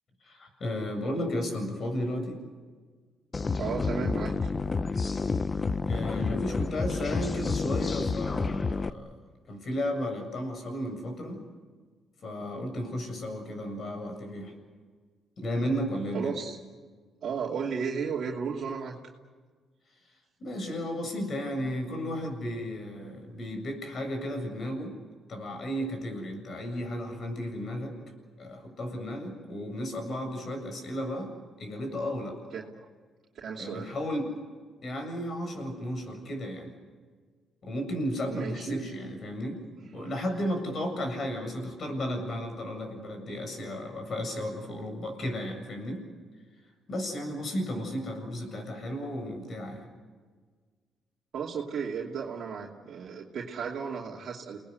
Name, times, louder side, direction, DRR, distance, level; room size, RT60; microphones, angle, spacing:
voice 1, 0.2-2.4 5.8-9.2 9.5-11.4 12.2-14.5 15.4-16.4 20.4-25.0 25.3-28.0 28.4-31.3 31.6-32.4 33.6-34.3 34.8-36.7 37.6-39.6 39.9-46.0 46.9-49.9, equal, 50° left, 5 dB, 7.6 m, -34 dB
sound 1, 3.3-8.9, left 4 dB, 30° left, 0.7 m, -29 dB
voice 2, 3.6-4.5 16.1-16.6 17.2-19.0 32.5-32.7 33.4-33.9 38.2-38.9 47.7-47.8 51.3-54.6, right 6 dB, 60° right, -3 dB, 2.7 m, -34 dB
29.5 x 19.5 x 8.3 m, 1.5 s
cardioid pair, 90°, 0 cm